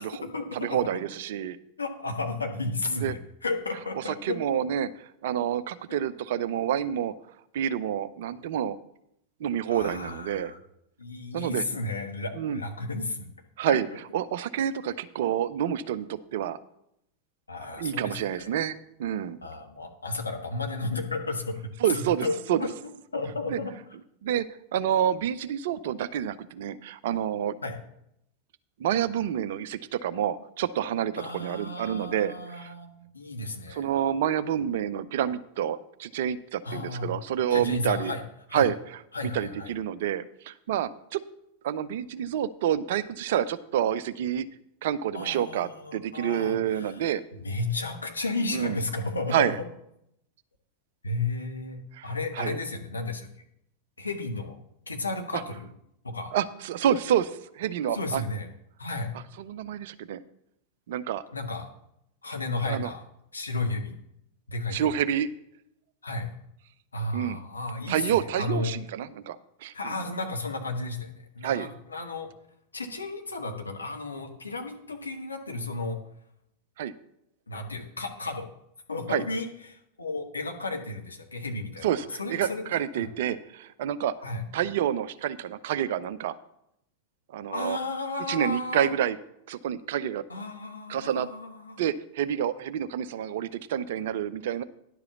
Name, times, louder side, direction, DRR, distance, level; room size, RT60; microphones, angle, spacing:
voice 1, 0.0-1.0 1.8-4.4 5.9-6.0 9.7-10.6 11.0-13.3 13.7-13.8 17.5-18.6 19.4-22.7 23.1-23.7 27.6-27.8 31.2-33.9 36.6-37.2 37.5-38.2 38.5-38.6 39.1-39.7 45.1-47.1 47.4-49.5 51.0-53.3 54.0-54.6 54.9-55.7 56.0-56.3 57.9-58.5 58.8-59.1 61.3-61.7 62.2-63.0 63.3-64.0 64.5-64.9 66.0-66.3 66.9-68.7 69.7-72.3 72.7-76.0 77.5-78.5 78.9-81.9 82.2-83.1 84.2-84.4 87.5-88.9 90.3-91.8, left 2 dB, 80° left, 3 dB, 1.3 m, -33 dB
voice 2, 0.5-1.6 3.0-3.1 4.0-7.1 7.5-8.8 9.4-10.5 11.3-11.6 12.4-12.6 13.6-13.9 14.1-16.6 17.7-19.4 21.8-22.7 23.5-23.6 24.2-27.6 28.8-32.7 33.7-38.1 38.5-38.8 39.2-41.2 41.6-44.5 44.8-47.2 48.5-48.8 49.3-49.6 51.9-52.1 52.4-52.6 55.3-55.4 56.3-58.2 59.4-60.2 60.9-61.2 62.7-62.9 64.7-65.3 67.1-67.4 67.9-69.4 69.6-69.9 71.4-71.7 76.8-76.9 79.1-79.2 81.8-84.1 84.5-86.3 87.3-87.8 88.3-89.2 89.5-90.2 90.9-91.3 91.8-94.6, right 10 dB, 55° right, 15 dB, 0.5 m, -28 dB
10.5 x 4.9 x 6.7 m, 0.77 s
figure-of-eight pair, 90°, 0 cm